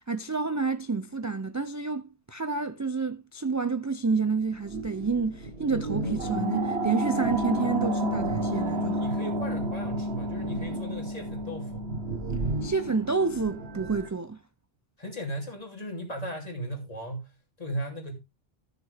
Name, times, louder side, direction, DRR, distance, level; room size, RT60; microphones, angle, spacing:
voice 1, 0.1-9.0 12.6-14.4, right 4 dB, 25° right, 0.4 m, -29 dB
sound 1, 4.5-14.1, right 1 dB, 90° right, 1.7 m, -31 dB
voice 2, 9.0-11.9 15.0-18.1, right 1 dB, 40° left, 3.1 m, -36 dB
14.0 x 6.8 x 3.4 m
omnidirectional pair, 1.0 m